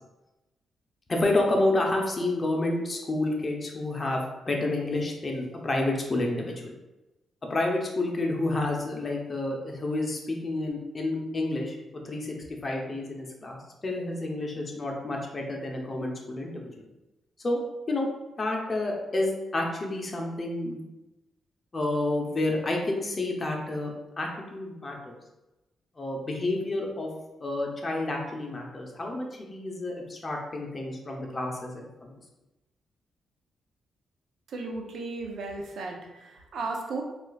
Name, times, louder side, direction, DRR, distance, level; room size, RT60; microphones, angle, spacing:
voice 1, 1.1-6.7 7.5-11.8 12.0-16.7 17.4-17.6 17.9-18.1 18.4-20.8 21.7-23.9 24.2-25.1 26.0-27.1 27.4-32.2, left 2 dB, 35° left, 0 dB, 0.7 m, -29 dB
voice 2, 34.5-37.0, right 3 dB, 70° right, 1 dB, 0.6 m, -35 dB
4.2 x 2.5 x 2.3 m, 1.0 s
cardioid pair, 80°, 0 cm